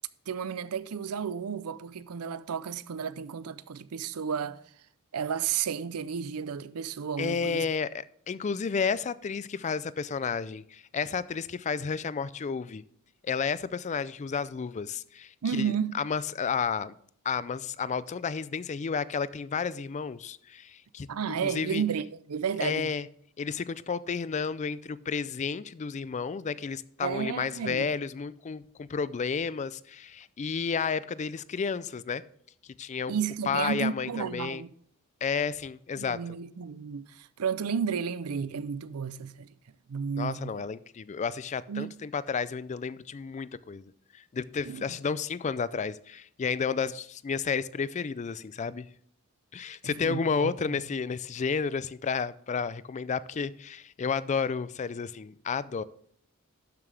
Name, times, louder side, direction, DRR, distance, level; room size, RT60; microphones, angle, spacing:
voice 1, 0.3-4.6 5.1-7.6 15.4-16.0 21.1-22.9 27.0-27.9 33.1-34.7 36.0-39.5 39.9-40.6 41.7-41.9 44.6-45.0 49.8-50.8, right 7 dB, 85° right, 0.5 m, -32 dB
voice 2, 7.2-12.8 13.2-16.9 17.2-21.8 22.6-23.1 23.4-32.2 32.8-33.1 33.5-34.6 35.2-36.2 40.2-48.9 49.5-55.8, left 5 dB, 35° left, 0.3 m, -32 dB
12.0 x 7.4 x 3.3 m
head